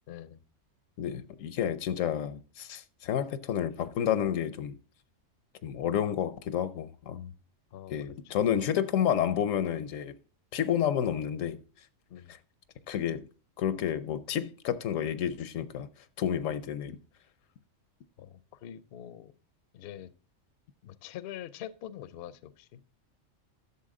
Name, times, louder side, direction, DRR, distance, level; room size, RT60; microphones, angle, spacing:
voice 1, 0.1-0.4 7.7-7.9 8.4-8.5 12.1-12.4 18.2-19.3 19.7-20.1 20.8-22.8, left 11 dB, 60° left, 0.7 m, -44 dB
voice 2, 1.0-4.8 5.6-7.3 7.9-10.2 10.5-11.6 12.9-13.3 13.6-15.9 16.2-17.0, left 9 dB, 85° left, 1.1 m, -30 dB
11.5 x 6.9 x 3.7 m
omnidirectional pair, 1.3 m